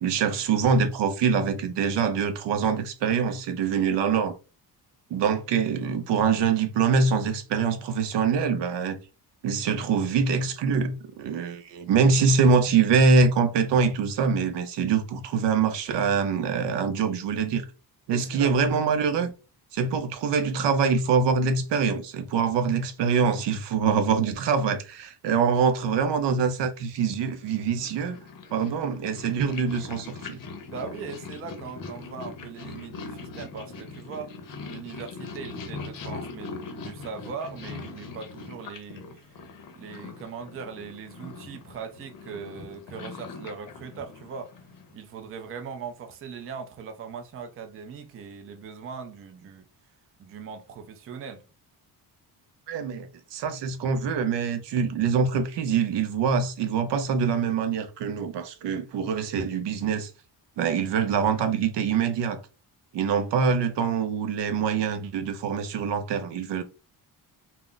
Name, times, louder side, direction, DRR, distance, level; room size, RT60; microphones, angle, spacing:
voice 1, 0.0-4.4 5.1-9.0 9.4-17.6 18.1-19.3 19.7-28.2 28.5-30.4 52.7-60.1 60.6-62.4 62.9-66.6, right 5 dB, 80° right, 0.6 m, -24 dB
voice 2, 18.1-18.5 19.1-19.3 30.7-39.3 39.7-44.5 44.9-49.7 50.2-51.4 58.7-58.8, right 6 dB, 35° right, 0.4 m, -40 dB
Purr, 27.4-45.0, left 4 dB, 50° left, 0.6 m, -41 dB
2.3 x 2.0 x 3.7 m
wide cardioid pair, 175°, 41 cm